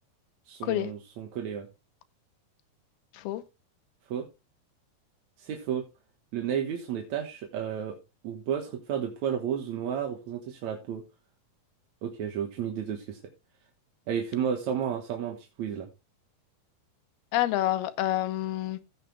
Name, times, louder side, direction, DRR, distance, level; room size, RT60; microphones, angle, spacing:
voice 1, 0.5-1.7 4.1-4.3 5.4-5.9 6.3-8.0 8.2-11.0 12.0-13.2 14.1-15.9, right 8 dB, 60° right, 2.2 m, -32 dB
voice 2, 17.3-18.9, left 14 dB, 80° left, 2.7 m, -28 dB
15.5 x 6.5 x 3.4 m
omnidirectional pair, 4.6 m